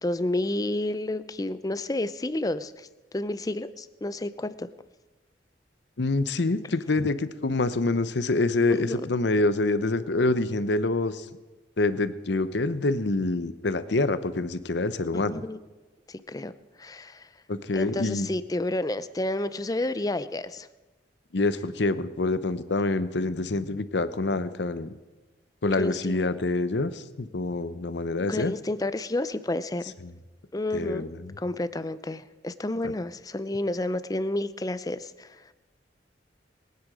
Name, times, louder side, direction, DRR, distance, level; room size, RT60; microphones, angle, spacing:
voice 1, 0.0-4.7 7.0-7.1 8.7-9.0 15.1-15.6 16.1-16.5 16.8-17.3 17.7-20.7 25.7-26.2 28.3-29.9 30.5-35.5, left 1 dB, 20° left, 14 dB, 0.5 m, -30 dB
voice 2, 6.0-11.3 11.8-15.4 17.5-18.3 21.3-24.9 25.6-28.5 30.0-30.1 30.7-31.3 32.8-32.9, left 2 dB, 70° left, 13 dB, 0.8 m, -26 dB
22.0 x 9.5 x 4.9 m, 1.2 s
head